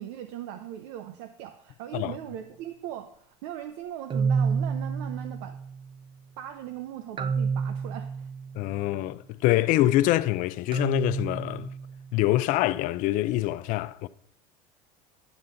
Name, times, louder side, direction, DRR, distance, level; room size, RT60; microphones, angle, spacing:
voice 1, 0.0-5.6 6.4-8.3, right 11 dB, 75° right, 0.7 m, -39 dB
sound 1, 2.1-2.4 4.1-6.0 7.2-8.8 10.7-12.2, right 5 dB, 30° right, 0.6 m, -30 dB
voice 2, 8.6-11.7 12.1-14.1, left 15 dB, 55° left, 0.5 m, -25 dB
10.5 x 7.3 x 3.9 m
supercardioid pair, 105°, 16 cm